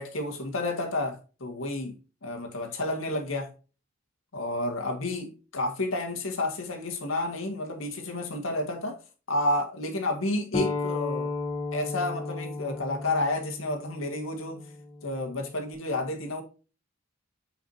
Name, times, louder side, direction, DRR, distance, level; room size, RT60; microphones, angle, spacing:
voice 1, 0.0-3.5 4.3-9.0 9.3-11.3 11.7-14.7 15.0-16.4, left 2 dB, 90° left, 1.8 m, -30 dB
sound 1, 10.5-15.7, left 3 dB, 30° left, 1.6 m, -34 dB
8.7 x 4.9 x 2.8 m
head